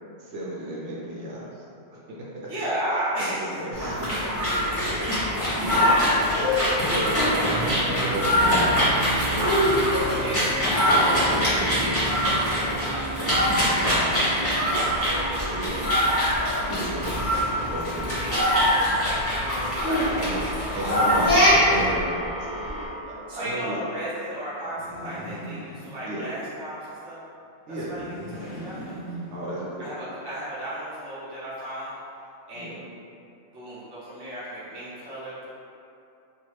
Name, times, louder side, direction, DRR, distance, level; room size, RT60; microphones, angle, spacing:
voice 1, 0.2-1.6 1.9-2.5 3.2-5.1 5.5-8.8 9.2-10.3 10.8-11.7 15.5-15.8 16.7-18.4 20.2-20.4 20.7-23.8 26.1-26.3 27.7-27.9 29.3-30.0 32.5-32.8, right 1 dB, 80° right, -6 dB, 0.9 m, -34 dB
voice 2, 2.5-3.6 4.8-5.2 5.8-6.2 6.6-6.8 9.1-15.9 18.2-21.0 23.3-27.2 27.7-29.0 29.8-31.9 32.5-32.8 33.5-35.5, equal, 25° right, -12 dB, 0.8 m, -34 dB
sound 1, 3.7-21.9, equal, 15° left, 0.8 m, -23 dB
sound 2, 14.8-22.9, left 1 dB, 55° right, 1.2 m, -35 dB
sound 3, 24.6-26.4 27.7-29.9, right 1 dB, 50° left, 0.6 m, -40 dB
2.6 x 2.3 x 3.1 m, 2.6 s
omnidirectional pair, 1.2 m